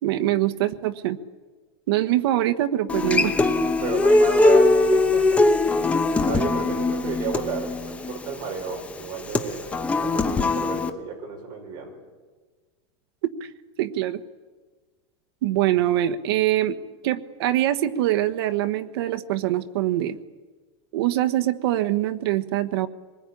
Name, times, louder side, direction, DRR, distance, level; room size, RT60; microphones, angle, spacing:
voice 1, 0.0-1.2 1.9-3.3 13.4-13.5 13.8-14.2 15.4-16.8 17.0-20.2 20.9-22.9, right 13 dB, 60° right, 8 dB, 1.3 m, -23 dB
Human voice / Acoustic guitar, 2.9-10.9, left 2 dB, 10° left, 0.9 m, -21 dB
voice 2, 3.8-5.5 5.8-5.9 6.2-9.7 10.0-12.0, right 5 dB, 30° right, 1 dB, 5.3 m, -32 dB
25.0 x 20.5 x 10.0 m, 1.3 s
supercardioid pair, 180°, 15 cm